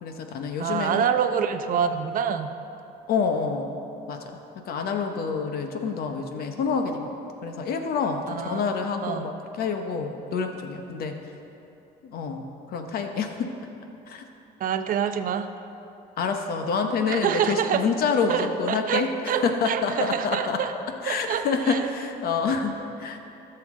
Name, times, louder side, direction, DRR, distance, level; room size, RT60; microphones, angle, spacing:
voice 1, 0.0-1.1 3.1-3.8 4.1-4.4 4.6-7.1 7.4-11.2 12.0-13.5 14.1-14.2 16.2-20.6 21.0-23.2, left 5 dB, 65° left, 5 dB, 0.8 m, -27 dB
voice 2, 0.6-2.5 8.4-8.7 9.0-9.3 14.6-15.5 17.1-17.8 18.3-20.7 21.1-21.8, right 8 dB, 55° right, 8 dB, 0.7 m, -26 dB
17.0 x 6.8 x 3.7 m, 2.8 s
cardioid pair, 110°, 17 cm